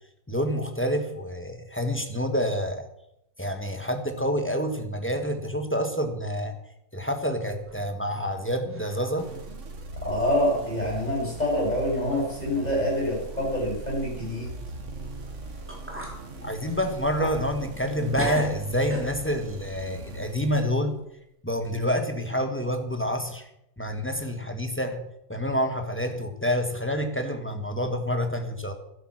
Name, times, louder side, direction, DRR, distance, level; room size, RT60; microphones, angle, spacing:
voice 1, 0.3-2.9 3.4-6.6 6.9-9.3 16.4-21.0 21.4-23.5 23.8-28.7, equal, 10° left, 5 dB, 1.4 m, -28 dB
sound 1, 7.5-8.4 8.7-9.2 9.6-9.7 10.6-10.7 11.4-11.5 11.9-12.3 12.6-12.7 15.2-15.3 15.7-16.2 16.6-17.9 18.2-19.5, equal, 10° right, 3.5 m, -36 dB
sound 2, 9.2-21.1, right 2 dB, 65° right, 1.8 m, -40 dB
voice 2, 10.0-14.5, left 1 dB, 30° left, -3 dB, 7.2 m, -26 dB
12.0 x 11.0 x 6.3 m, 0.81 s
omnidirectional pair, 1.4 m